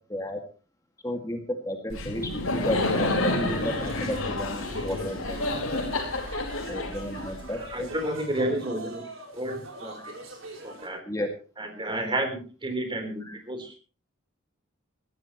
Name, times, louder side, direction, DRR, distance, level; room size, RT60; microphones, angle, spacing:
voice 1, 0.1-0.4 1.0-5.4 6.7-7.9 11.1-11.3 13.2-13.4, left 1 dB, 15° left, 3 dB, 2.1 m, -33 dB
Laughter, 1.9-7.7, left 2 dB, 70° left, 4.4 m, -29 dB
sound 1, 3.7-10.9, right 2 dB, 65° right, 5.1 m, -43 dB
voice 2, 7.6-9.1 9.3-10.1 10.6-11.0 11.6-13.8, right 1 dB, 20° right, 6 dB, 3.7 m, -31 dB
21.0 x 15.5 x 3.1 m, 0.35 s
head